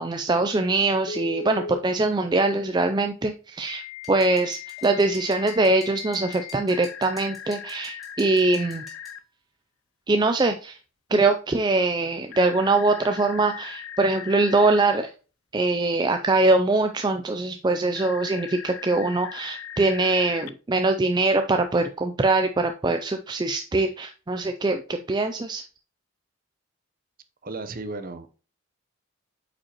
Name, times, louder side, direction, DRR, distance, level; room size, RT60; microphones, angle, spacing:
voice 1, 0.0-8.8 10.1-10.8 11.1-15.1 15.5-25.6, right 2 dB, 20° right, 0.3 m, -23 dB
Telephone, 1.1-1.8 3.7-9.2 12.3-14.8 18.0-20.5, left 6 dB, 70° left, 0.5 m, -39 dB
sound 1, 4.0-9.2, left 1 dB, ahead, 2.1 m, -49 dB
voice 2, 27.4-28.3, right 3 dB, 40° right, 0.8 m, -34 dB
8.4 x 5.3 x 2.9 m
head